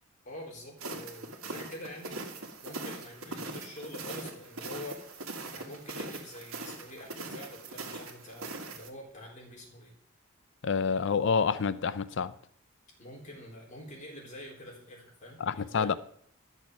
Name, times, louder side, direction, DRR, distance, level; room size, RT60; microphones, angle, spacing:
voice 1, 0.2-2.2 2.6-5.2 5.5-9.9 13.0-15.9, left 1 dB, 35° left, 3.7 m, -46 dB
sound 1, 0.8-8.9, right 2 dB, 85° right, 1.7 m, -41 dB
voice 2, 10.6-12.3 15.4-15.9, left 5 dB, 60° left, 0.5 m, -28 dB
11.5 x 6.6 x 6.1 m
head